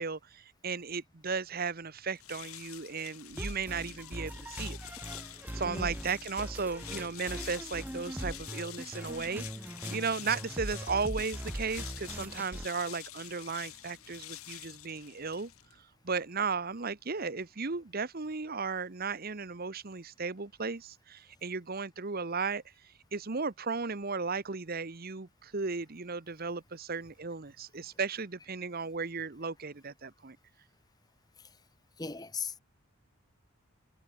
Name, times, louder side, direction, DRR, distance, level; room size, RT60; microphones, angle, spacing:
voice 1, 0.0-4.8 5.5-9.5 9.9-15.5 16.0-22.6 23.1-30.4, right 4 dB, 45° right, 1.0 m, -35 dB
sound 1, 2.1-15.8, left 14 dB, 80° left, 1.8 m, -47 dB
sound 2, 3.3-12.7, right 1 dB, 10° right, 0.5 m, -41 dB
voice 2, 5.6-6.0 32.0-32.6, left 4 dB, 20° left, 1.3 m, -38 dB
head